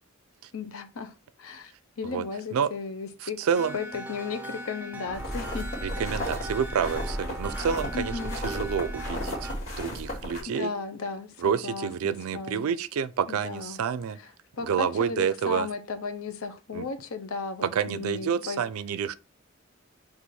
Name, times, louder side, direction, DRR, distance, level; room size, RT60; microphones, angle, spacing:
voice 1, 0.5-1.1 1.4-1.7 2.0-3.4 3.7-5.7 6.0-6.3 7.9-8.4 10.5-12.7 13.3-13.8 14.2-14.3 14.5-18.6, left 4 dB, 75° left, 0.6 m, -35 dB
voice 2, 3.2-3.8 5.8-10.7 11.4-14.2 14.6-15.7 16.7-16.9 17.6-19.1, right 7 dB, 85° right, 0.4 m, -29 dB
sound 1, 3.6-9.5, right 1 dB, 5° right, 0.5 m, -39 dB
sound 2, 5.1-10.4, equal, 35° left, 2.3 m, -34 dB
4.1 x 2.5 x 4.6 m
head